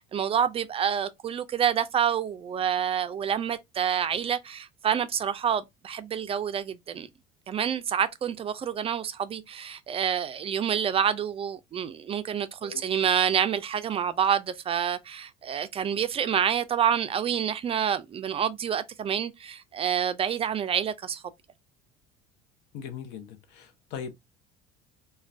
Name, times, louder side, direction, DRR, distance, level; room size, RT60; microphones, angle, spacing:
voice 1, 0.0-7.1 7.5-21.2, right 8 dB, 30° right, 0.3 m, -28 dB
voice 2, 22.7-24.1, left 7 dB, 70° left, 0.7 m, -39 dB
2.4 x 2.2 x 3.2 m
supercardioid pair, 90°, 18 cm